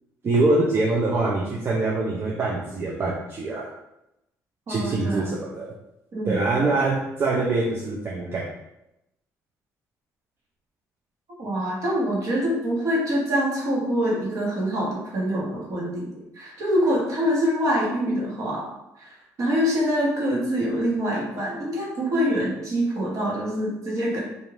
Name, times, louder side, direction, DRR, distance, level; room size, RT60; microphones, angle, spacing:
voice 1, 0.2-3.7 4.7-5.7 6.3-8.5, right 2 dB, 35° right, -3 dB, 0.5 m, -24 dB
voice 2, 4.7-5.3 6.1-6.6 11.4-16.1 16.3-18.6 19.0-19.1 19.4-24.2, equal, 50° right, -3 dB, 1.1 m, -25 dB
2.5 x 2.5 x 3.2 m, 0.88 s
cardioid pair, 85°, 7 cm